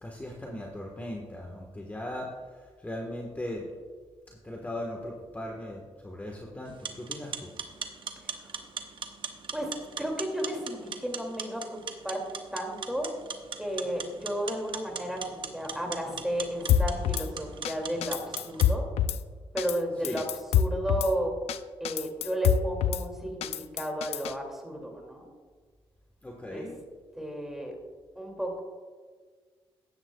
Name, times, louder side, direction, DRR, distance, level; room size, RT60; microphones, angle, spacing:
voice 1, 0.0-2.3 2.8-3.6 4.4-7.5 20.0-20.2 26.2-26.7, left 1 dB, 15° left, 0 dB, 1.4 m, -38 dB
sound 1, 6.7-18.7, right 6 dB, 55° right, 1.0 m, -40 dB
voice 2, 9.5-11.8 12.0-12.2 12.5-13.1 13.6-18.9 19.5-20.3 20.5-21.3 21.8-25.3 26.5-26.7 27.2-27.8 28.2-28.6, right 1 dB, 5° right, 1 dB, 2.5 m, -33 dB
Drum kit / Snare drum, 16.7-17.3 17.6-17.7 18.0-19.2 19.6-19.8 20.0-21.1 21.5-21.6 21.8-23.0 23.4-24.3, left 9 dB, 85° left, 0.4 m, -26 dB
14.5 x 10.5 x 2.3 m, 1.5 s
cardioid pair, 85°, 10 cm